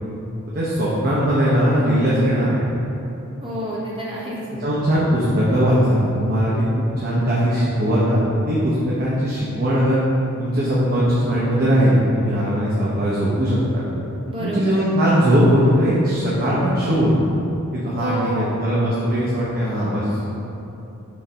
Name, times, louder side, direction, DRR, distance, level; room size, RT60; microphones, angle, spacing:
voice 1, 0.5-2.6 4.6-6.5 7.0-8.2 8.5-10.0 10.4-13.8 14.4-17.1 17.7-20.2, equal, 45° right, -7 dB, 0.9 m, -19 dB
voice 2, 3.4-4.5 14.3-14.9 18.0-18.6, right 1 dB, 25° right, -6 dB, 1.3 m, -28 dB
7.1 x 3.3 x 5.0 m, 2.9 s
head